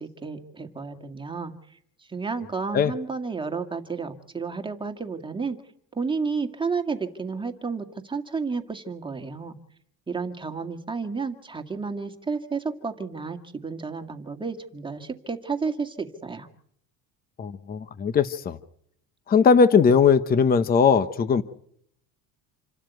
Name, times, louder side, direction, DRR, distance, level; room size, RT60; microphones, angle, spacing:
voice 1, 0.0-1.5 2.1-5.6 5.9-9.6 10.1-16.5, right 4 dB, 15° right, 6 dB, 2.0 m, -31 dB
voice 2, 17.4-18.6 19.3-21.4, left 6 dB, 25° left, 12 dB, 0.9 m, -19 dB
28.0 x 12.5 x 9.2 m, 0.69 s
cardioid pair, 150°, 38 cm